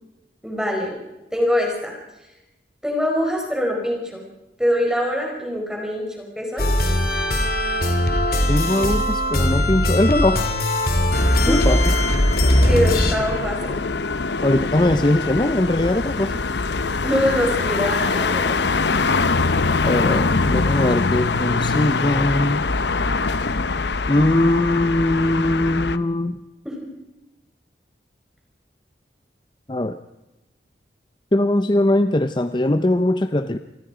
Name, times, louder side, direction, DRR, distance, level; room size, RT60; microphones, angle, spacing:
voice 1, 0.4-1.0 1.3-1.9 2.8-4.2 4.6-6.7 11.4-11.7 12.6-13.8 17.0-18.6 26.6-26.7, equal, 5° right, 0 dB, 4.8 m, -23 dB
sound 1, 6.6-13.1, left 1 dB, 55° left, 2.6 m, -20 dB
voice 2, 8.5-10.5 11.5-11.8 14.4-16.3 19.8-22.6 24.1-26.4 29.7-30.0 31.3-33.6, left 1 dB, 25° left, 10 dB, 0.7 m, -20 dB
sound 2, 11.1-26.0, left 3 dB, 75° left, 0.9 m, -23 dB
27.5 x 20.0 x 5.0 m, 1.0 s
head